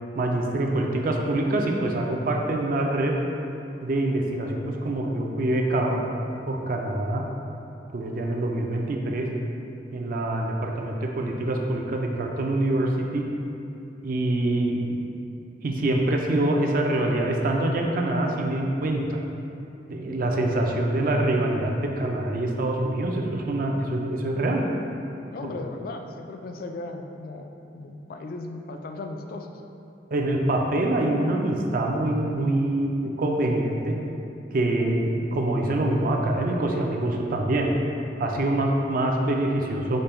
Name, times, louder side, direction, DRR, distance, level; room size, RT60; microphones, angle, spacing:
voice 1, 0.2-3.2 3.8-7.2 7.9-9.3 9.9-13.3 14.0-15.2 15.6-19.2 19.9-24.6 25.4-25.5 30.1-34.0 34.5-37.7 38.2-40.0, right 1 dB, 50° right, 1 dB, 0.4 m, -25 dB
voice 2, 25.3-27.5 27.7-29.5, left 2 dB, 55° left, 4 dB, 0.3 m, -36 dB
5.1 x 2.2 x 4.3 m, 2.7 s
head